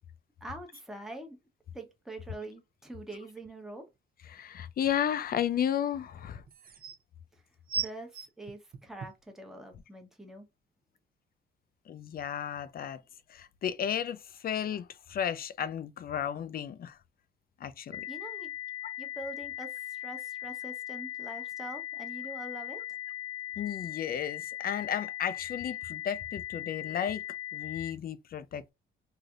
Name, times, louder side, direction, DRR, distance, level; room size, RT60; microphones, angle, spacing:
voice 1, 0.4-1.4 1.7-3.9 7.3-7.4 7.7-10.5 18.1-18.5 19.0-22.8, right 1 dB, ahead, 1.0 m, -44 dB
voice 2, 4.3-6.4 11.9-13.0 13.3-17.0 17.6-18.0 23.6-27.2 27.5-28.7, left 9 dB, 50° left, 0.5 m, -33 dB
sound 1, 4.4-4.5 6.0-6.1 6.5-7.0 7.7-9.3 10.0-10.1, right 6 dB, 50° right, 0.7 m, -36 dB
sound 2, 17.9-27.9, left 12 dB, 15° left, 1.3 m, -39 dB
3.2 x 2.7 x 2.4 m
cardioid pair, 90°, 20 cm